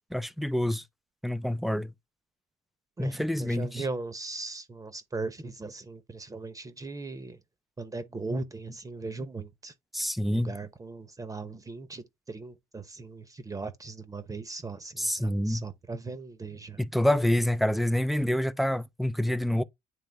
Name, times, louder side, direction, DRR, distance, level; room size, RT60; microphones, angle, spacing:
voice 1, 0.1-0.8 1.2-1.9 3.0-3.7 9.9-10.5 15.0-15.6 16.8-19.6, left 1 dB, ahead, 0.4 m, -27 dB
voice 2, 3.0-7.4 7.8-9.7 10.3-16.8, right 3 dB, 20° right, 0.9 m, -38 dB
9.3 x 3.3 x 3.4 m
cardioid pair, 110°, 17 cm